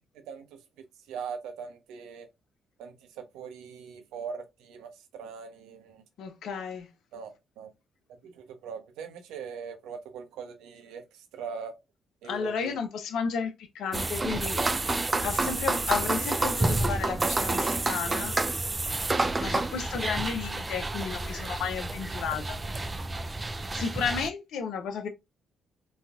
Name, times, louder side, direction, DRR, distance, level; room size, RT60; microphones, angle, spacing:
voice 1, 1.1-2.3 2.8-6.0 7.1-7.7 8.4-11.0 11.3-11.7 12.2-12.7, right 6 dB, 70° right, 0.6 m, -41 dB
voice 2, 6.2-6.9 12.2-14.6 15.2-18.3 19.4-22.6 23.7-25.1, left 6 dB, 65° left, 0.6 m, -33 dB
sound 1, 13.9-24.3, right 2 dB, 25° right, 0.4 m, -29 dB
4.1 x 2.4 x 2.3 m
figure-of-eight pair, 40°, 0 cm